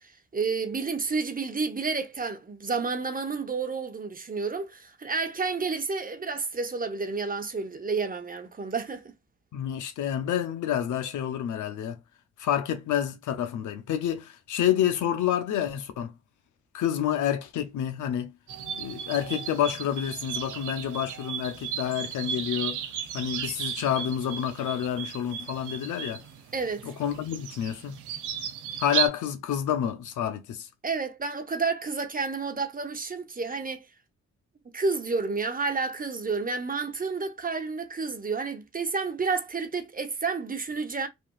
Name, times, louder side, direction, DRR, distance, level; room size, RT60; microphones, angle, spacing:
voice 1, 0.0-9.1 26.5-26.9 30.8-33.9 34.7-41.1, right 4 dB, 30° right, 0.7 m, -30 dB
voice 2, 9.5-12.0 12.4-16.1 16.7-18.4 18.8-22.8 23.1-26.2 26.8-28.0 28.8-30.7, left 10 dB, 80° left, 0.6 m, -28 dB
sound 1, 18.5-29.1, right 9 dB, 90° right, 0.5 m, -35 dB
2.9 x 2.5 x 2.2 m
supercardioid pair, 45°, 30 cm